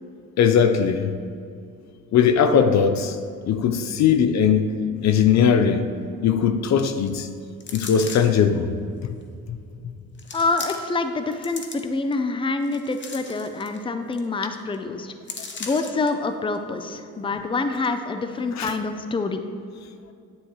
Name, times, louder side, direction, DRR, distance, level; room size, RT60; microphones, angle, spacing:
voice 1, 0.4-1.2 2.1-3.2 3.5-5.9 6.2-7.3 7.7-8.7 9.0-9.1 18.6-18.7, left 7 dB, 65° left, 0.7 m, -19 dB
sound 1, 7.6-8.4 9.2-9.3 10.2-11.0 11.3-12.1 12.6-13.8 14.1-14.2 14.5-14.7 15.3-16.1 16.5-16.6, left 4 dB, 40° left, 1.0 m, -37 dB
voice 2, 10.3-15.1 15.6-19.4, left 3 dB, 15° left, 0.6 m, -26 dB
9.8 x 8.6 x 3.1 m
cardioid pair, 90°, 30 cm